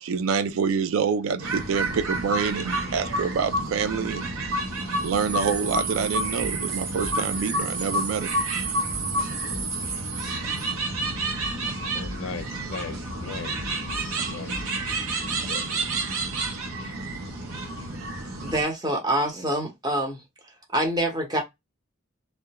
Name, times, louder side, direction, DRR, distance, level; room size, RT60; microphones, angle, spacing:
voice 1, 0.0-4.4 5.0-8.3, right 6 dB, 70° right, 0.3 m, -26 dB
sound 1, 1.4-18.6, right 2 dB, 85° right, 0.7 m, -29 dB
sound 2, 6.1-8.1 8.6-10.6 10.9-13.1 13.6-15.8, equal, 50° right, 0.7 m, -41 dB
voice 2, 11.9-13.6 14.0-14.8 15.1-15.6 16.8-16.9 17.2-17.3 17.6-17.7, left 5 dB, 60° left, 0.4 m, -39 dB
voice 3, 18.4-20.2 20.7-21.4, right 1 dB, 20° right, 0.8 m, -25 dB
2.4 x 2.1 x 2.9 m
head